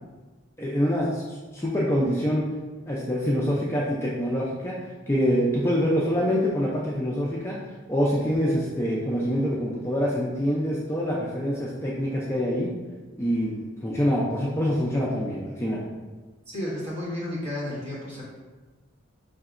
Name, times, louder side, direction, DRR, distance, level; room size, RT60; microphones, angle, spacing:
voice 1, 0.6-2.4 2.9-4.8 5.1-7.6 7.9-12.7 13.2-15.8, equal, 15° left, -5 dB, 0.4 m, -25 dB
voice 2, 16.5-18.2, left 1 dB, 35° right, -7 dB, 1.3 m, -32 dB
5.1 x 2.8 x 2.4 m, 1.3 s
head